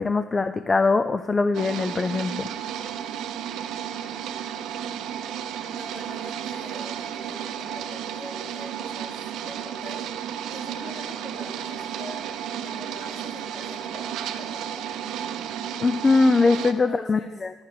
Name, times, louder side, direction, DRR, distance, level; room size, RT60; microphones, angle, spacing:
voice 1, 0.0-2.5 15.8-17.7, left 3 dB, 20° left, 10 dB, 0.5 m, -22 dB
sound 1, 1.5-16.7, right 9 dB, 70° right, 0.8 m, -33 dB
voice 2, 5.6-10.0 10.5-15.0 16.5-17.3, left 1 dB, 35° left, -1 dB, 3.5 m, -44 dB
12.5 x 6.5 x 9.2 m, 1.3 s
cardioid pair, 150°, 0 cm